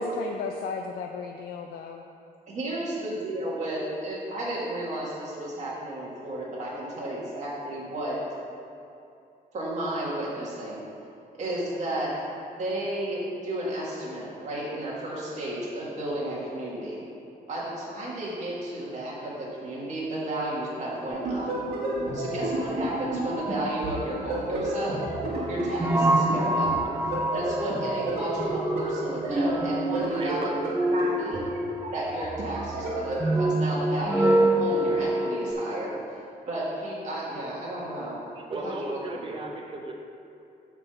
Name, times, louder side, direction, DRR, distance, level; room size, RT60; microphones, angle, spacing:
voice 1, 0.0-2.0, left 5 dB, 90° left, 3 dB, 0.4 m, -35 dB
voice 2, 2.5-8.2 9.5-10.8 11.4-12.1 12.6-17.0 17.5-21.5 22.1-25.0 25.5-26.7 27.0-31.4 31.9-35.9 36.5-38.2 38.5-39.0, right 1 dB, 50° right, -7 dB, 1.7 m, -33 dB
sound 1, 21.1-33.4, right 1 dB, 80° right, 1.6 m, -32 dB
voice 3, 22.0-22.6 30.1-30.5 38.3-39.9, right 2 dB, 35° right, 0 dB, 0.9 m, -37 dB
sound 2, 25.0-35.5, right 1 dB, 15° right, 0.4 m, -26 dB
8.2 x 3.7 x 6.8 m, 2.7 s
wide cardioid pair, 155°, 16 cm